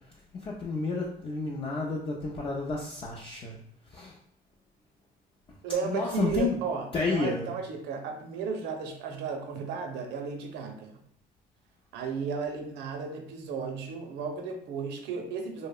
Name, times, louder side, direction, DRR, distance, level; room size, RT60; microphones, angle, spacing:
voice 1, 0.4-3.6 3.9-4.1 5.9-6.5 6.9-7.5, left 3 dB, 30° left, -2 dB, 0.4 m, -31 dB
voice 2, 5.6-10.9 11.9-15.7, right 5 dB, 80° right, 4 dB, 0.5 m, -34 dB
2.8 x 2.0 x 2.3 m, 0.71 s
cardioid pair, 110°, 17 cm